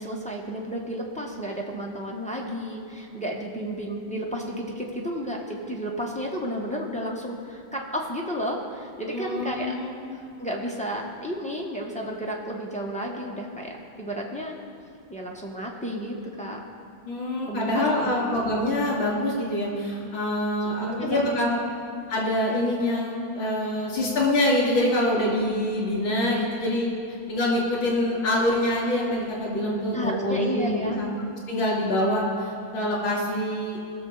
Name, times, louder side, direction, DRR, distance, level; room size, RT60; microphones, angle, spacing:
voice 1, 0.0-9.7 10.1-14.6 15.1-16.6 17.5-18.2 20.8-21.4 29.9-31.0, equal, 5° left, -2 dB, 0.5 m, -32 dB
voice 2, 9.1-10.2 17.0-21.6 22.1-26.9 27.3-31.1 31.5-33.8, left 1 dB, 85° left, -3 dB, 3.1 m, -25 dB
18.5 x 6.5 x 3.9 m, 2.5 s
omnidirectional pair, 2.1 m